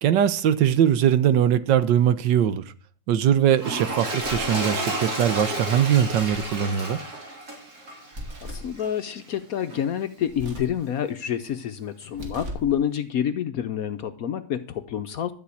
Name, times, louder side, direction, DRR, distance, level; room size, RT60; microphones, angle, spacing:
voice 1, 0.0-2.6 3.1-7.0, right 10 dB, 80° right, 1.5 m, -21 dB
Toilet flush, 3.5-9.0 9.7-9.8, right 2 dB, 55° right, 4.0 m, -31 dB
sound 1, 4.2-4.6 6.0-6.6 8.1-8.8 10.3-10.8 12.0-12.8, equal, 40° right, 2.5 m, -38 dB
voice 2, 8.4-15.3, left 9 dB, 65° left, 1.0 m, -28 dB
12.5 x 5.1 x 8.3 m
omnidirectional pair, 2.0 m